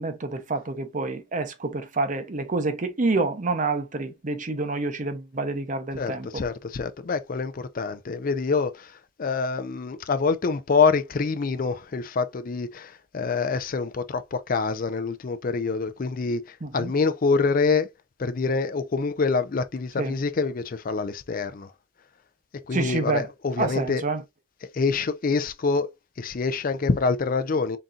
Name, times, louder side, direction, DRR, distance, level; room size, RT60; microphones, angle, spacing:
voice 1, 0.0-6.4 16.6-16.9 20.0-20.1 22.7-23.3 23.6-24.2, right 3 dB, 40° right, 0.7 m, -28 dB
voice 2, 5.9-8.9 9.2-17.9 18.2-21.7 22.7-24.0 24.7-25.9 26.2-27.8, left 4 dB, 45° left, 0.4 m, -26 dB
4.0 x 3.7 x 2.4 m
head